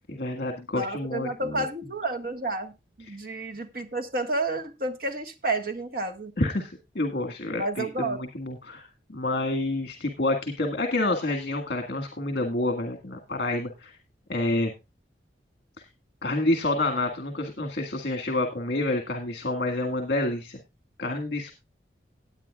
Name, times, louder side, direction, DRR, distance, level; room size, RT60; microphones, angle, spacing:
voice 1, 0.1-1.6 3.1-3.2 6.4-8.9 9.1-13.9 14.3-14.7 16.2-20.6 21.0-21.5, left 2 dB, 60° left, 3 dB, 1.8 m, -28 dB
voice 2, 0.7-2.7 3.0-6.3 7.5-8.2, right 2 dB, 55° right, 4 dB, 1.6 m, -30 dB
18.0 x 8.9 x 2.4 m, 0.25 s
head